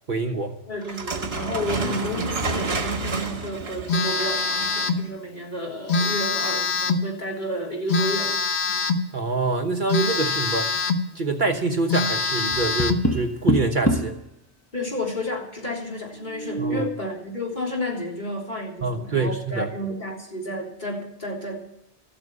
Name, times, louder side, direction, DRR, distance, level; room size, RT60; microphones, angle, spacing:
voice 1, 0.1-0.6 9.1-10.7 11.1-14.2 16.6-16.9 18.8-19.7, right 3 dB, 45° right, 4 dB, 1.3 m, -25 dB
voice 2, 0.7-8.4 14.7-21.7, left 1 dB, 45° left, -2 dB, 3.6 m, -31 dB
sound 1, 0.8-5.0, right 3 dB, 65° right, 1.7 m, -30 dB
Telephone, 3.9-5.1 5.9-7.1 7.9-9.1 9.9-11.1 11.5-11.6 11.9-13.1, left 3 dB, 70° left, 1.3 m, -24 dB
Tap, 12.5-14.2 16.2-17.0, equal, 15° left, 0.9 m, -25 dB
14.0 x 8.9 x 8.5 m, 0.80 s
omnidirectional pair, 1.1 m